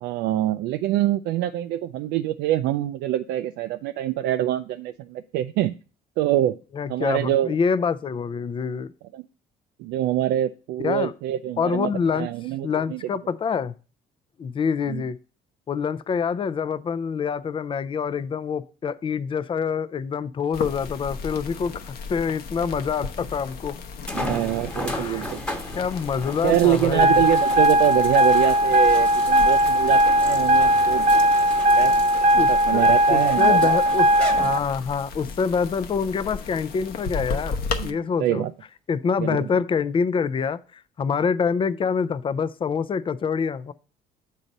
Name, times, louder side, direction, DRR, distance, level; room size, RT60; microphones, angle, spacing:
voice 1, 0.0-5.7 6.2-6.6 6.9-7.5 9.1-9.2 9.8-13.0 14.9-15.0 24.1-25.4 26.4-31.1 31.8-31.9 32.3-33.8 37.8-38.5 39.2-39.5, right 13 dB, 85° right, 0.4 m, -25 dB
voice 2, 6.7-8.9 10.8-11.1 11.6-12.3 12.6-13.7 14.4-15.2 15.7-23.8 24.9-25.3 25.7-27.2 32.4-34.1 34.4-37.6 37.8-38.4 38.9-43.7, left 6 dB, 30° left, 0.5 m, -26 dB
sound 1, 20.5-37.9, left 4 dB, 65° left, 0.9 m, -36 dB
sound 2, 24.1-35.1 35.8-35.9 39.4-39.5, left 1 dB, 5° left, 1.2 m, -35 dB
sound 3, 27.0-34.6, equal, 45° right, 0.7 m, -18 dB
7.3 x 4.0 x 5.3 m
cardioid pair, 110°, 17 cm